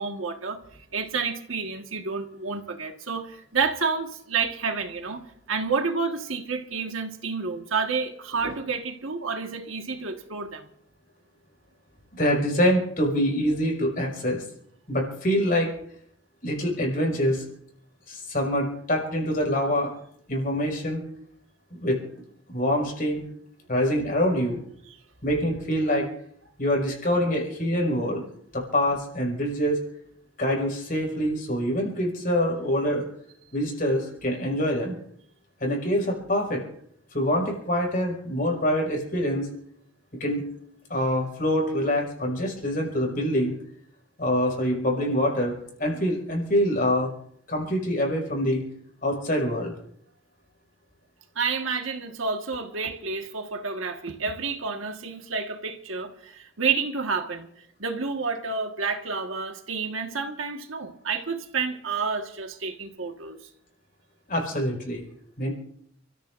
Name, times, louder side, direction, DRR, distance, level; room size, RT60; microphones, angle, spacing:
voice 1, 0.0-10.7 51.3-57.5 57.8-63.4, right 5 dB, 90° right, 5 dB, 1.6 m, -29 dB
voice 2, 12.2-14.4 14.9-15.7 16.4-17.4 18.1-19.9 20.3-21.0 21.8-22.0 22.5-23.3 23.7-24.6 25.2-26.1 26.6-28.2 28.5-29.8 30.4-33.0 33.5-35.0 35.6-36.6 37.1-39.5 40.2-40.4 40.9-43.5 44.2-47.1 47.5-48.6 49.0-49.7 64.3-65.0 65.4-65.5, equal, 45° left, 0 dB, 5.4 m, -25 dB
30.0 x 14.0 x 2.6 m, 0.68 s
head